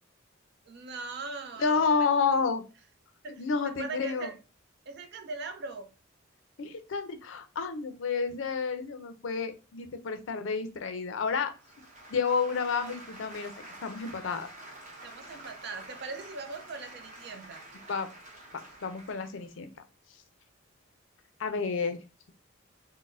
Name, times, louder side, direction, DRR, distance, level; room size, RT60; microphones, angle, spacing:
voice 1, 0.7-2.1 3.2-4.4 4.9-5.9 15.0-17.6, right 3 dB, 55° right, 0.5 m, -40 dB
voice 2, 1.6-2.6 3.4-4.3 6.6-11.5 12.1-13.5 13.8-14.5 17.9-18.1 18.8-19.7 21.4-22.0, left 5 dB, 70° left, 0.5 m, -30 dB
sound 1, 11.5-19.5, right 1 dB, 35° right, 1.0 m, -48 dB
3.9 x 2.1 x 2.5 m
head